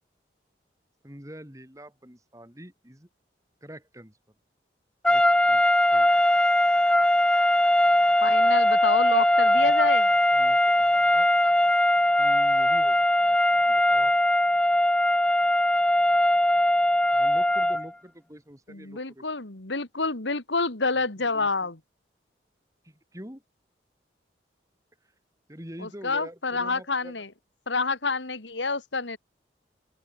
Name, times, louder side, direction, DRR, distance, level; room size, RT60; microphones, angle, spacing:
voice 1, 1.0-3.1 3.6-4.2 5.1-5.6 5.9-6.1 9.5-9.7 10.1-11.3 12.2-14.1 17.1-19.3 21.2-21.5 22.8-23.4 25.5-27.2, equal, 15° right, 4.2 m, -45 dB
sound 1, 5.0-17.9, left 1 dB, 5° left, 0.3 m, -21 dB
voice 2, 8.2-10.1 18.7-21.8 25.8-27.3 27.7-29.2, left 3 dB, 80° left, 2.5 m, -28 dB
open air
head